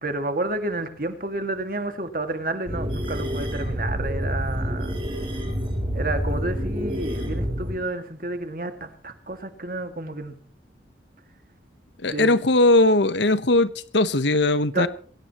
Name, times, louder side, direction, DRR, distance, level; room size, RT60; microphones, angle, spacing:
voice 1, 0.0-5.0 5.9-10.4 12.1-12.3 14.7-14.9, right 2 dB, 50° right, 2.2 m, -30 dB
sound 1, 2.7-7.8, equal, 30° right, 3.7 m, -28 dB
voice 2, 12.0-14.9, left 2 dB, 75° left, 1.0 m, -19 dB
23.5 x 17.0 x 3.0 m
head